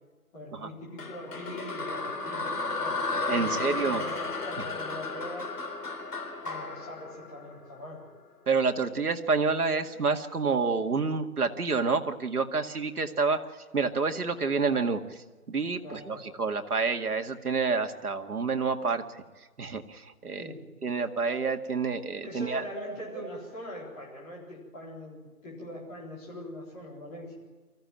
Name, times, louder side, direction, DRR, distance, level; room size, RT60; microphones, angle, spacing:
voice 1, 0.3-5.5 6.4-8.0 15.8-16.2 20.4-20.6 22.2-27.3, left 1 dB, 10° left, -6 dB, 4.1 m, -42 dB
sound 1, 1.0-8.2, left 3 dB, 80° left, 4.0 m, -34 dB
voice 2, 3.3-4.0 4.6-4.7 8.5-13.4 13.7-19.2 19.6-20.5 20.8-22.6 22.9-23.0, right 4 dB, 75° right, 5 dB, 2.2 m, -28 dB
24.5 x 15.5 x 9.1 m, 1.3 s
hypercardioid pair, 175°, 46 cm